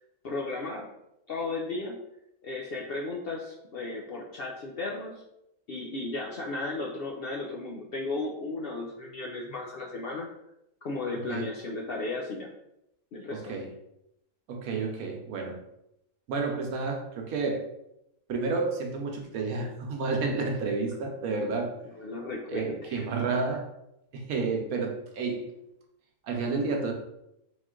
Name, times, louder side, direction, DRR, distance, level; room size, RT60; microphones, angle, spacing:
voice 1, 0.2-0.9 1.3-2.0 2.4-5.2 5.7-10.3 10.8-12.5 13.1-13.5 21.8-23.0, left 2 dB, 60° left, -2 dB, 0.6 m, -35 dB
voice 2, 13.3-13.7 14.5-15.6 16.3-17.6 18.3-21.7 22.5-23.7 24.1-25.5 26.2-26.9, right 4 dB, 75° right, 2 dB, 1.2 m, -30 dB
3.9 x 3.1 x 3.7 m, 0.83 s
omnidirectional pair, 1.5 m